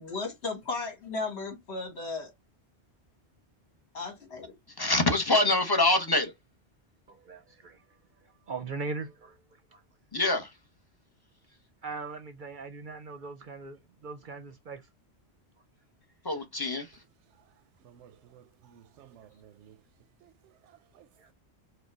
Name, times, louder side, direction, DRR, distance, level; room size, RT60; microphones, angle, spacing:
voice 1, 0.0-2.3 3.9-4.5, left 3 dB, 70° left, 2.1 m, -35 dB
voice 2, 4.8-6.3 10.1-10.6 16.2-17.0, left 2 dB, 25° left, 0.8 m, -25 dB
voice 3, 7.1-7.8 8.2-9.4 9.7-9.8 11.8-14.9 21.2-21.3, right 4 dB, 55° right, 0.7 m, -40 dB
voice 4, 17.8-19.8 20.2-21.3, right 10 dB, 85° right, 0.9 m, -56 dB
5.0 x 2.3 x 4.5 m
omnidirectional pair, 1.2 m